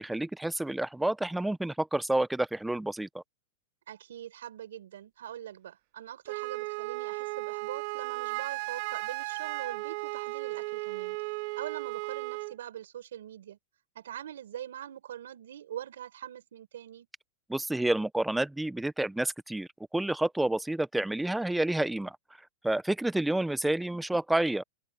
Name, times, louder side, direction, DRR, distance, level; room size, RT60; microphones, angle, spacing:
voice 1, 0.0-3.2 17.5-22.2 22.6-24.6, right 1 dB, 5° right, 0.6 m, -29 dB
voice 2, 3.9-11.2 11.6-13.6 13.9-17.1, right 11 dB, 85° right, 5.9 m, -43 dB
Wind instrument woodwind instrument, 6.3-12.5, right 28 dB, 45° right, 0.3 m, -35 dB
open air
supercardioid pair, 150°, 0 cm